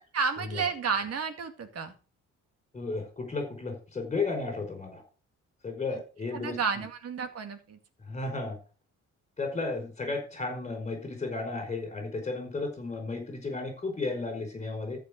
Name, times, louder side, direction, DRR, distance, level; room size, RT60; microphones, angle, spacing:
voice 1, 0.1-1.9 6.3-7.8, right 5 dB, 55° right, 8 dB, 2.1 m, -31 dB
voice 2, 2.7-5.0 5.6-6.6 8.1-8.6 9.4-15.0, left 3 dB, 25° left, 4 dB, 5.1 m, -33 dB
14.0 x 6.0 x 5.2 m, 0.36 s
cardioid pair, 90°, 30 cm